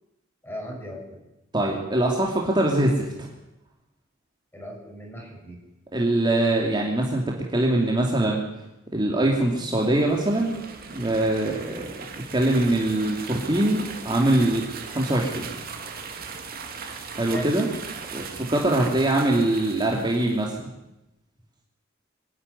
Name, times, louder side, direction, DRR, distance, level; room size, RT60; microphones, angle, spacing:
voice 1, 0.4-1.2 4.5-5.6 17.2-17.5, equal, 10° left, -1 dB, 6.4 m, -37 dB
voice 2, 1.5-3.3 5.9-8.4 8.9-10.5 10.9-12.0 12.3-15.5 17.2-17.7 18.1-20.7, right 1 dB, 25° right, -1 dB, 2.6 m, -23 dB
sound 1, 9.7-20.5, right 5 dB, 50° right, 2.4 m, -38 dB
24.0 x 11.0 x 9.7 m, 0.94 s
head